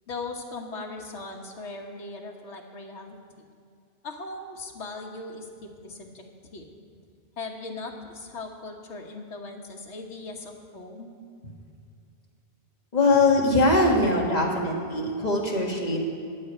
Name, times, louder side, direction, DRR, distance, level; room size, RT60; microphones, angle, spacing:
voice 1, 0.1-3.4 4.0-6.7 7.4-11.1, left 3 dB, 80° left, 1 dB, 1.5 m, -39 dB
voice 2, 12.9-16.0, left 2 dB, 40° left, -1 dB, 1.7 m, -22 dB
13.5 x 5.3 x 9.0 m, 2.4 s
omnidirectional pair, 1.1 m